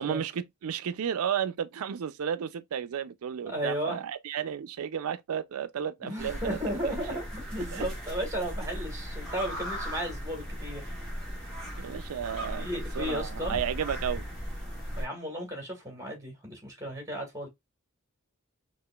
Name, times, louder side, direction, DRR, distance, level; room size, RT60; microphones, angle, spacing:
voice 1, 0.0-7.2 7.7-7.8 11.8-14.2, right 8 dB, 80° right, 0.4 m, -33 dB
voice 2, 3.5-4.0 6.0-10.8 12.6-13.6 15.0-17.5, equal, 15° right, 1.7 m, -34 dB
sound 1, 6.2-15.1, equal, 5° left, 1.6 m, -37 dB
4.9 x 2.5 x 2.3 m
head